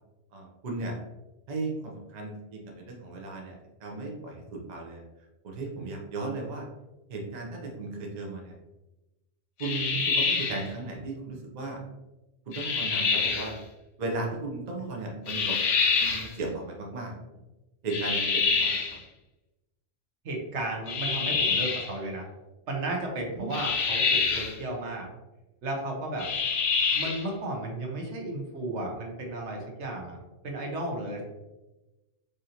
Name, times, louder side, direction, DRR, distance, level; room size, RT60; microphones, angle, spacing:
voice 1, 0.3-0.9 1.5-5.0 5.4-6.7 7.1-8.6 9.6-11.8 12.5-13.6 14.0-15.6 15.9-17.2 17.8-18.8 23.4-23.5, right 3 dB, 45° right, 0 dB, 0.7 m, -35 dB
sound 1, 9.6-10.7 12.5-13.5 15.3-16.3 17.9-19.0 20.9-21.9 23.5-24.6 26.2-27.3, left 5 dB, 80° left, 1.0 m, -26 dB
voice 2, 20.2-22.3 22.7-25.1 25.6-26.3 26.9-30.2 30.4-31.2, right 2 dB, 70° right, 0 dB, 1.1 m, -34 dB
4.8 x 2.5 x 2.8 m, 1.0 s
omnidirectional pair, 1.3 m